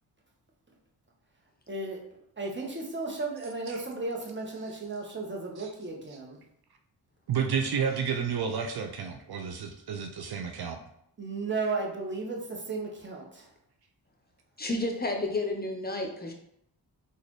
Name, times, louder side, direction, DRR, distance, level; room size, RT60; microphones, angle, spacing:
voice 1, 1.7-2.0 2.4-6.4 11.2-13.5, right 3 dB, 25° right, 0 dB, 1.1 m, -34 dB
voice 2, 7.3-10.8, right 6 dB, 55° right, 4 dB, 0.6 m, -31 dB
voice 3, 14.6-16.3, left 2 dB, 20° left, 3 dB, 0.8 m, -31 dB
3.9 x 2.6 x 3.1 m, 0.75 s
supercardioid pair, 50°, 46 cm